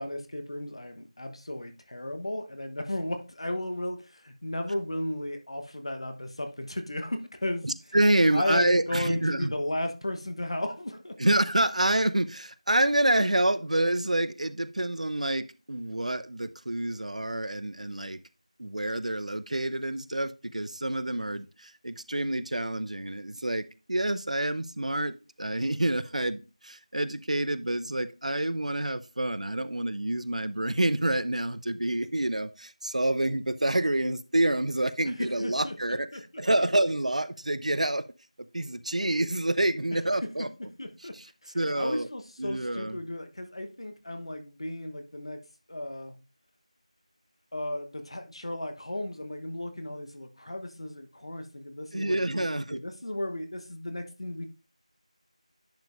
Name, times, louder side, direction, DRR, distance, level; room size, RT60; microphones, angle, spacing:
voice 1, 0.0-7.7 8.3-11.2 35.2-35.8 36.1-36.2 40.1-41.2 41.4-45.4 45.7-46.1 47.5-54.5, left 1 dB, 50° left, 1.0 m, -35 dB
voice 2, 7.6-9.5 11.2-18.2 18.6-36.1 36.4-38.0 38.5-40.5 41.1-41.3 41.5-42.1 42.4-43.0 51.9-52.8, right 1 dB, 75° right, 0.6 m, -27 dB
10.5 x 5.2 x 2.5 m
figure-of-eight pair, 175°, 4 cm